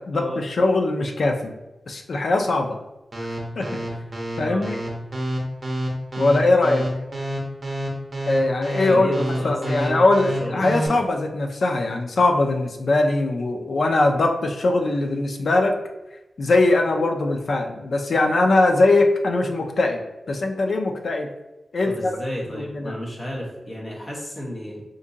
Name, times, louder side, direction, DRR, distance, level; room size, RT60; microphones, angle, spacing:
voice 1, 0.0-1.5 1.9-2.8 3.2-3.3 3.6-3.7 4.4-4.8 6.2-6.9 8.3-15.8 16.4-20.0 20.3-21.3 21.7-22.2 22.4-22.9, left 2 dB, 60° left, 3 dB, 0.4 m, -21 dB
sound 1, 3.1-10.9, right 1 dB, 30° right, 0.8 m, -28 dB
voice 2, 4.4-4.7 8.9-10.1 10.4-11.0 21.8-24.8, equal, 25° left, -3 dB, 0.9 m, -32 dB
2.6 x 2.6 x 3.8 m, 1.0 s
wide cardioid pair, 155°, 0 cm